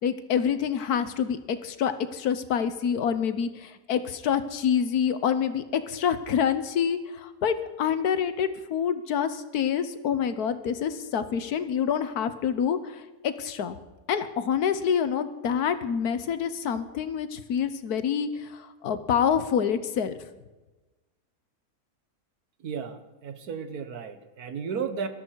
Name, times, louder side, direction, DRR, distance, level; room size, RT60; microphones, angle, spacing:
voice 1, 0.0-13.8 14.1-20.2, left 8 dB, 75° left, 11 dB, 1.5 m, -27 dB
voice 2, 22.6-25.1, right 6 dB, 75° right, 9 dB, 1.7 m, -34 dB
19.0 x 13.0 x 4.7 m, 1.1 s
omnidirectional pair, 1.6 m